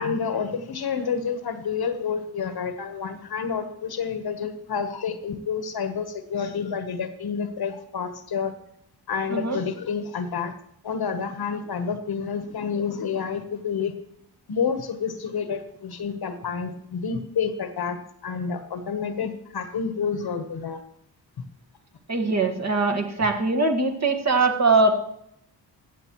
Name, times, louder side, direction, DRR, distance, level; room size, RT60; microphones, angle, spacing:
voice 1, 0.0-8.5 9.1-10.5 10.8-13.9 14.5-20.8, left 6 dB, 60° left, 9 dB, 1.1 m, -29 dB
voice 2, 22.1-25.0, right 3 dB, 40° right, 3 dB, 1.6 m, -22 dB
15.0 x 7.9 x 3.0 m, 0.73 s
cardioid pair, 85°, 43 cm